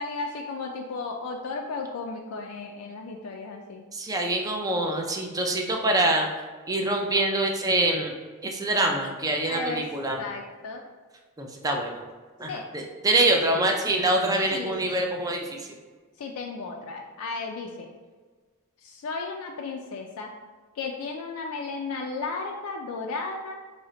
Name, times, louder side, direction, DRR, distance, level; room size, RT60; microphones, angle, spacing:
voice 1, 0.0-3.8 9.5-9.8 10.2-10.8 12.5-12.6 14.5-15.0 16.2-17.9 18.8-20.3 20.7-23.6, left 3 dB, 80° left, 2 dB, 0.4 m, -34 dB
voice 2, 3.9-6.3 6.7-8.1 8.4-10.2 11.4-12.0 12.4-15.7, right 2 dB, 15° right, 2 dB, 0.4 m, -25 dB
4.1 x 2.1 x 3.7 m, 1.4 s
head